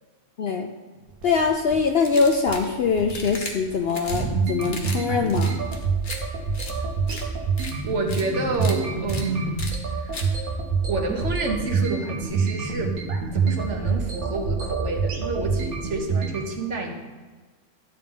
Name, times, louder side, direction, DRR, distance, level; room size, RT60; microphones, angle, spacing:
sound 1, 1.1-16.4, right 5 dB, 90° right, 1.4 m, -26 dB
voice 1, 1.2-5.6, left 5 dB, 60° left, 4 dB, 0.6 m, -23 dB
sound 2, 2.0-2.7 3.1-3.5 3.9-4.2 4.6-5.0 5.3-6.2 6.5-6.7 7.1-7.2 7.6-7.7 8.1-8.2 8.5-8.7 9.1-9.2 9.6-9.7 10.1-10.3, left 3 dB, 40° left, 1.1 m, -36 dB
voice 2, 7.9-10.4 10.8-17.0, right 3 dB, 60° right, 2 dB, 1.3 m, -29 dB
10.5 x 3.6 x 7.0 m, 1.4 s
omnidirectional pair, 1.4 m